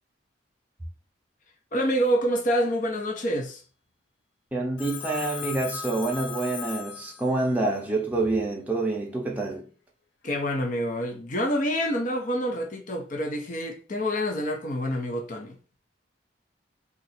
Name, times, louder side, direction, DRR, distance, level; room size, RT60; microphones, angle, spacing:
voice 1, 1.7-3.6 10.2-15.6, equal, 45° left, 0.6 m, -27 dB
voice 2, 4.5-9.6, right 2 dB, 10° right, 0.6 m, -27 dB
Telephone, 4.8-7.6, left 7 dB, 90° left, 0.5 m, -37 dB
2.8 x 2.5 x 4.1 m
head